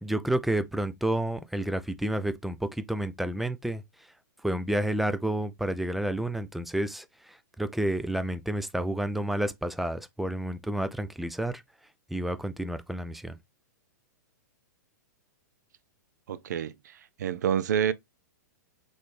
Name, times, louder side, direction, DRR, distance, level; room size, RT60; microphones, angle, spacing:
voice 1, 0.0-3.8 4.4-11.6 12.1-13.4, right 1 dB, ahead, 0.4 m, -30 dB
voice 2, 16.3-16.9 17.2-17.9, right 9 dB, 65° right, 0.5 m, -28 dB
4.0 x 3.3 x 3.3 m
hypercardioid pair, 110°, 10 cm